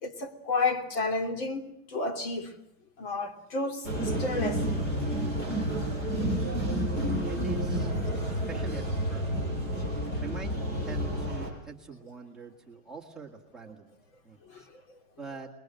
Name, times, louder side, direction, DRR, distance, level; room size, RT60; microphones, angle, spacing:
voice 1, 0.0-2.5 3.0-4.6 5.2-5.4 6.1-6.2 14.5-14.6, left 3 dB, 45° left, 3.2 m, -31 dB
sound 1, 3.8-11.5, equal, 25° left, 7.3 m, -30 dB
voice 2, 7.2-7.9 8.3-9.3 10.2-10.6 10.9-13.9 14.2-14.7 15.2-15.5, right 5 dB, ahead, 2.1 m, -43 dB
29.0 x 22.0 x 7.8 m
supercardioid pair, 175°, 39 cm